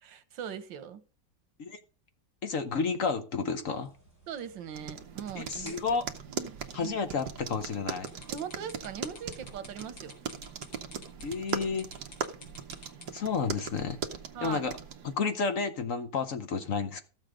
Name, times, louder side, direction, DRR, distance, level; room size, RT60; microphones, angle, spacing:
voice 1, 0.0-1.0 4.3-6.0 6.3-6.9 8.3-10.2 14.3-14.6, right 8 dB, 85° right, 1.7 m, -40 dB
voice 2, 2.4-3.9 5.3-6.0 6.7-8.1 11.2-11.9 13.1-14.0 14.4-14.8 15.0-17.0, left 5 dB, 55° left, 1.1 m, -31 dB
sound 1, 3.6-10.6, right 1 dB, 25° left, 7.9 m, -59 dB
sound 2, 4.7-15.2, right 7 dB, 65° right, 1.5 m, -40 dB
sound 3, 8.1-13.3, left 3 dB, 90° left, 3.5 m, -49 dB
13.5 x 7.3 x 5.0 m
omnidirectional pair, 2.0 m